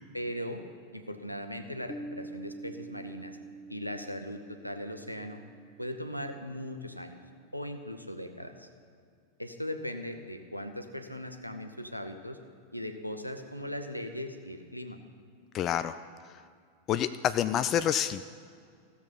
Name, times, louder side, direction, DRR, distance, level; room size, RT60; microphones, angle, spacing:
voice 1, 0.1-0.6 0.9-3.4 3.7-5.4 5.8-7.2 7.5-8.7 9.4-12.4 12.7-15.0, left 1 dB, 90° left, 7 dB, 0.8 m, -39 dB
Piano, 1.9-7.3, right 2 dB, 10° left, 0.7 m, -47 dB
voice 2, 15.5-16.0 16.9-18.2, left 10 dB, 30° left, 12 dB, 0.3 m, -28 dB
15.0 x 7.1 x 5.6 m, 2.2 s
figure-of-eight pair, 90°, 0 cm